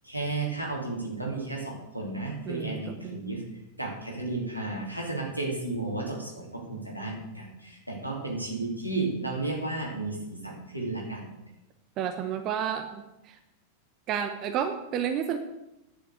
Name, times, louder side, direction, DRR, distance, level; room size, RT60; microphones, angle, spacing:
voice 1, 0.0-3.4 3.8-11.3, right 2 dB, 90° right, -2 dB, 3.0 m, -33 dB
voice 2, 2.5-3.2 12.0-13.4 14.1-15.4, right 8 dB, 35° right, 7 dB, 1.0 m, -31 dB
10.0 x 6.4 x 8.2 m, 0.92 s
figure-of-eight pair, 90°, 0 cm